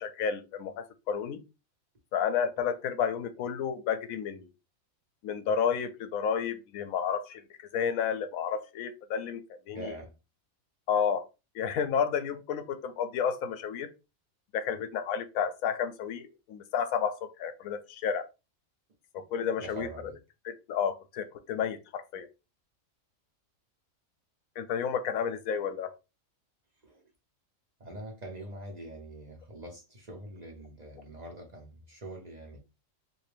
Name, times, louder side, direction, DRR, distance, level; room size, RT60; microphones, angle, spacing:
voice 1, 0.0-1.4 2.1-4.5 5.2-9.4 9.7-10.0 10.9-11.2 11.5-13.9 14.5-18.3 19.1-19.9 20.4-22.3 24.6-25.9, left 7 dB, 80° left, 1.0 m, -31 dB
voice 2, 9.7-10.1 19.6-20.2 26.8-27.0 27.8-32.6, right 1 dB, 40° right, 0.7 m, -44 dB
3.3 x 2.6 x 3.3 m
omnidirectional pair, 1.4 m